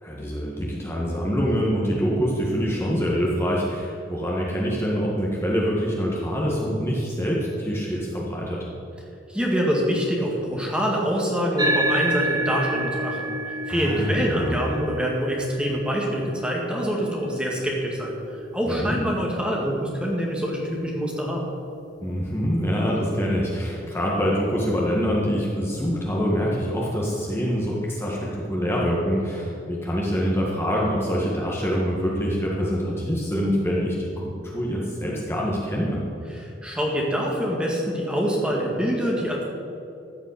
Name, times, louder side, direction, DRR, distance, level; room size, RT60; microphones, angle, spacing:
voice 1, 0.0-8.6 13.7-14.6 18.7-19.0 22.0-36.0, equal, 15° left, -4 dB, 1.6 m, -25 dB
voice 2, 9.3-13.4 13.7-18.2 18.5-21.4 36.3-39.4, equal, 5° right, -2 dB, 1.9 m, -25 dB
sound 1, 11.6-20.3, right 1 dB, 20° right, 0.9 m, -30 dB
14.5 x 5.4 x 8.6 m, 2.6 s
head